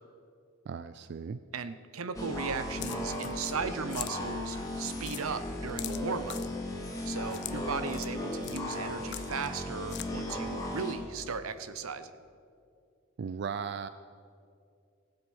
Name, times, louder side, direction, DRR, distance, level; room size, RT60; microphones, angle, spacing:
voice 1, 0.7-1.4 13.2-13.9, right 6 dB, 55° right, 12 dB, 0.3 m, -36 dB
voice 2, 1.5-6.4 7.0-12.1, right 5 dB, 85° right, 12 dB, 0.7 m, -37 dB
sound 1, 2.1-10.9, left 1 dB, 15° left, 2.2 m, -36 dB
sound 2, 2.8-3.6 3.9-4.1 4.6-4.7 5.0-5.2 5.8-6.5 7.3-7.5 7.9-8.1 8.4-8.6 9.1-9.6 9.9-10.1, left 14 dB, 55° left, 0.5 m, -41 dB
18.0 x 7.7 x 6.2 m, 2.4 s
head